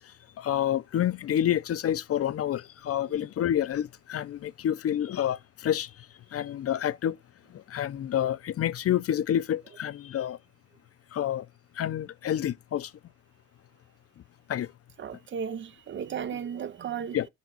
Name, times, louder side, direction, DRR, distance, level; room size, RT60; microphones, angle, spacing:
voice 1, 0.4-6.1 6.3-7.2 7.5-10.4 11.1-11.5 11.8-12.9 14.5-14.7 17.1-17.3, left 10 dB, 50° left, 0.5 m, -28 dB
voice 2, 15.0-17.2, right 7 dB, 40° right, 0.4 m, -35 dB
5.2 x 4.1 x 5.9 m
cardioid pair, 90°, 30 cm